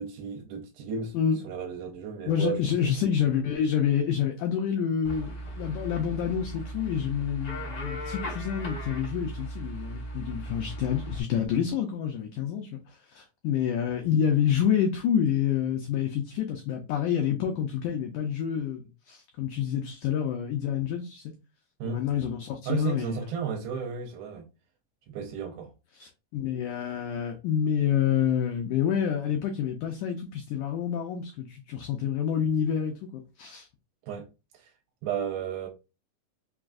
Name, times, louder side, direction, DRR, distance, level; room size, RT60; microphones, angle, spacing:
voice 1, 0.0-1.1 1.4-3.0 21.8-22.0 22.7-24.5 25.1-25.7 34.0-34.3 34.5-34.7 35.0-35.7, right 6 dB, 80° right, 2.4 m, -34 dB
voice 2, 2.3-21.2 21.8-23.2 25.9-33.7, left 8 dB, 85° left, 1.7 m, -28 dB
sound 1, 5.0-11.2, right 1 dB, 65° left, 0.9 m, -37 dB
5.8 x 2.3 x 2.5 m
omnidirectional pair, 4.2 m